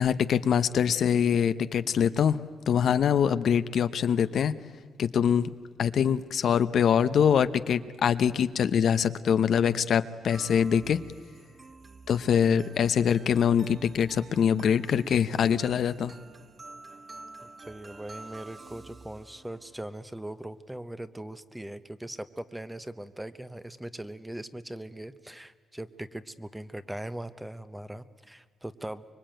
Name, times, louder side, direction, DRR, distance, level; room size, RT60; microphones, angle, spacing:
voice 1, 0.0-2.4 2.7-4.5 5.0-5.5 5.8-11.0 12.1-16.1, left 8 dB, 65° left, 12 dB, 0.8 m, -24 dB
sound 1, 10.3-20.0, right 3 dB, 35° right, 1.6 m, -49 dB
voice 2, 17.4-29.0, right 1 dB, 10° right, 12 dB, 1.0 m, -40 dB
25.0 x 23.0 x 9.1 m, 1.5 s
cardioid pair, 105°, 0 cm